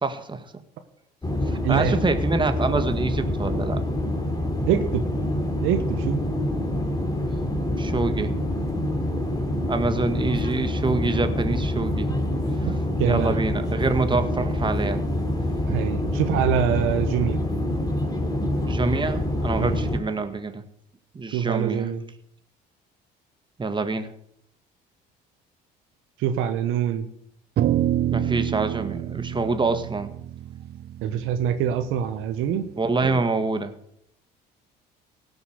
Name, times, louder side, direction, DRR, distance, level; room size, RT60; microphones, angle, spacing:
voice 1, 0.0-0.4 1.5-3.8 7.8-8.3 9.7-12.1 13.0-15.0 18.7-20.6 21.1-21.9 23.6-24.1 28.1-30.1 32.8-33.7, right 3 dB, 20° right, 8 dB, 1.7 m, -26 dB
sound 1, 1.2-20.0, left 1 dB, 20° left, 3.1 m, -26 dB
voice 2, 1.6-2.0 4.6-5.0 5.6-6.2 13.0-13.3 15.6-17.4 19.6-19.8 21.3-22.0 26.2-27.1 31.0-32.6 33.0-33.2, right 9 dB, 70° right, 8 dB, 1.3 m, -25 dB
sound 2, 27.6-32.1, right 12 dB, 50° right, 0.6 m, -27 dB
17.0 x 7.0 x 6.6 m, 0.75 s
hypercardioid pair, 70°, 21 cm